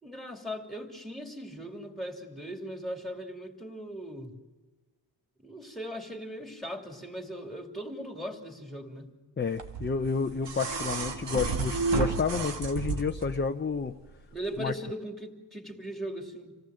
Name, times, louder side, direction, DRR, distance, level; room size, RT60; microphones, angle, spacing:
voice 1, 0.0-4.4 5.4-9.2 14.3-16.6, equal, ahead, 3 dB, 2.8 m, -39 dB
voice 2, 9.4-13.9 14.6-14.7, left 5 dB, 25° left, 6 dB, 0.6 m, -30 dB
sound 1, 9.6-13.4 14.6-14.7, right 4 dB, 80° right, 2.1 m, -31 dB
27.5 x 18.5 x 7.7 m, 1.3 s
wide cardioid pair, 180°, 42 cm